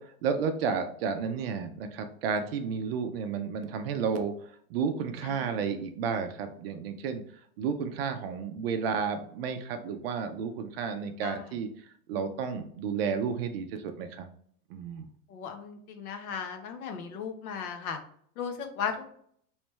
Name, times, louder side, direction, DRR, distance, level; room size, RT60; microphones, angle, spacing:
voice 1, 0.0-4.3 4.7-7.2 7.6-11.7 12.1-14.3 14.7-15.1, right 6 dB, 45° right, 7 dB, 0.4 m, -32 dB
voice 2, 5.2-5.6 11.2-11.4 15.3-18.0 18.4-19.1, left 6 dB, 70° left, 6 dB, 0.9 m, -36 dB
3.3 x 3.1 x 3.0 m, 0.62 s
supercardioid pair, 150°, 44 cm